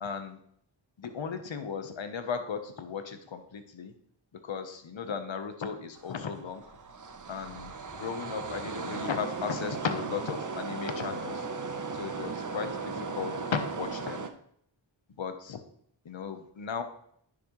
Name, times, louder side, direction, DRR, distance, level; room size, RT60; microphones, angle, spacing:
voice 1, 0.0-0.4 1.0-3.9 4.4-6.6 7.3-11.5 11.9-14.3 15.2-15.6 16.0-16.8, left 6 dB, 70° left, 8 dB, 1.1 m, -36 dB
sound 1, 5.9-14.3, right 4 dB, 40° right, 0.8 m, -37 dB
10.0 x 6.2 x 3.2 m, 0.67 s
wide cardioid pair, 60°, 47 cm